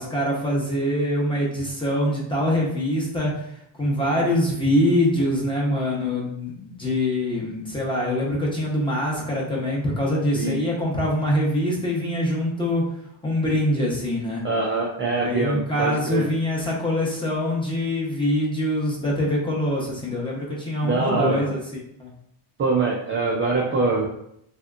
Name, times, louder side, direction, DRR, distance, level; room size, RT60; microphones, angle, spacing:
voice 1, 0.0-3.3 3.8-12.8 13.2-14.4 15.0-22.1, left 1 dB, 10° left, -4 dB, 0.7 m, -24 dB
voice 2, 14.4-16.3 20.8-21.5 22.6-24.0, right 3 dB, 30° right, -3 dB, 0.3 m, -24 dB
3.3 x 2.8 x 2.4 m, 0.76 s
cardioid pair, 140°, 48 cm